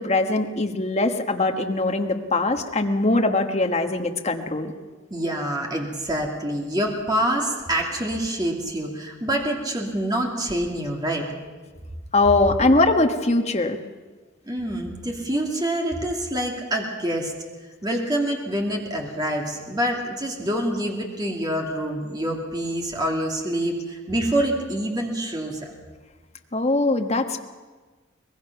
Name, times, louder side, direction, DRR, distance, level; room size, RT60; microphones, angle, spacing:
voice 1, 0.0-4.7 12.1-13.8 26.5-27.4, left 2 dB, 35° left, 4 dB, 1.3 m, -21 dB
voice 2, 5.1-11.3 14.4-17.3 17.8-25.7, right 1 dB, 20° right, 0 dB, 2.4 m, -26 dB
23.0 x 20.0 x 5.9 m, 1.4 s
head